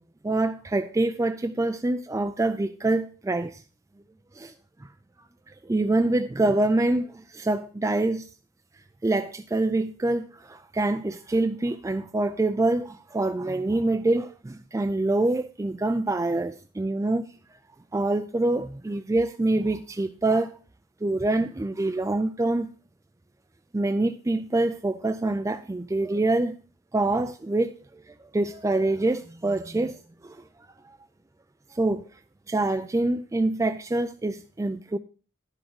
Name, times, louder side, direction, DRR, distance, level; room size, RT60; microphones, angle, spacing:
voice 1, 0.2-3.6 4.3-4.5 4.8-4.9 5.6-8.3 9.0-17.3 17.9-20.6 21.0-22.7 23.7-26.6 26.9-30.4 31.7-32.1 32.5-35.0, right 2 dB, 15° right, 0.3 m, -25 dB
10.5 x 6.4 x 4.6 m
head